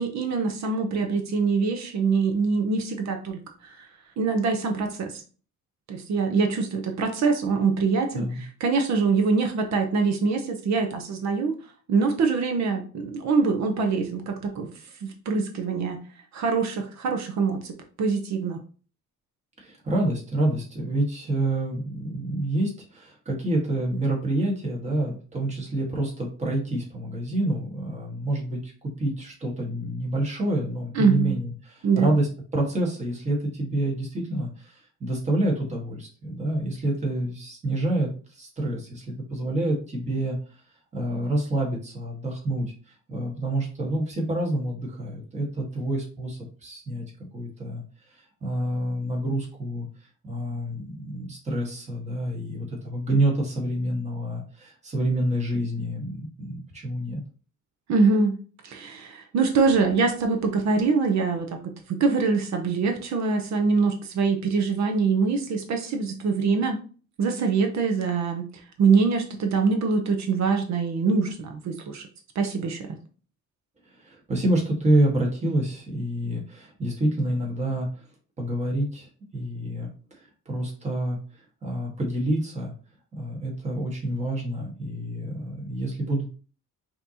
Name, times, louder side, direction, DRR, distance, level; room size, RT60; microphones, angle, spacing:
voice 1, 0.0-3.9 4.2-5.2 5.9-11.6 11.9-14.7 15.0-16.0 16.3-18.6 30.9-31.3 31.8-32.1 57.9-58.3 58.6-66.8 67.2-68.5 68.8-72.1 72.3-73.0, right 4 dB, 60° right, 5 dB, 0.8 m, -24 dB
voice 2, 19.6-40.4 40.9-42.7 43.1-47.0 47.3-47.8 48.2-57.2 73.8-78.0 78.4-79.9 80.1-82.7 83.1-86.3, right 1 dB, 20° right, -2 dB, 1.5 m, -28 dB
5.6 x 2.9 x 2.8 m, 0.38 s
cardioid pair, 165°, 32 cm